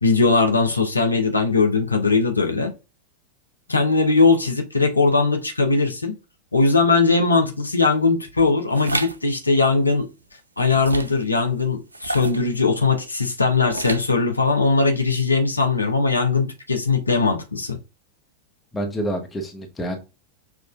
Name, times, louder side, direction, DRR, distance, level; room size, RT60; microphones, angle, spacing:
voice 1, 0.0-2.7 3.7-6.1 6.5-10.1 10.6-17.8, left 3 dB, 80° left, 0.7 m, -20 dB
sound 1, 8.7-9.2 10.7-11.2 11.9-12.5 13.7-14.2, right 2 dB, 80° right, 0.4 m, -29 dB
voice 2, 18.7-20.0, right 1 dB, 15° left, 1.0 m, -28 dB
6.0 x 2.4 x 2.3 m
figure-of-eight pair, 90°, 0 cm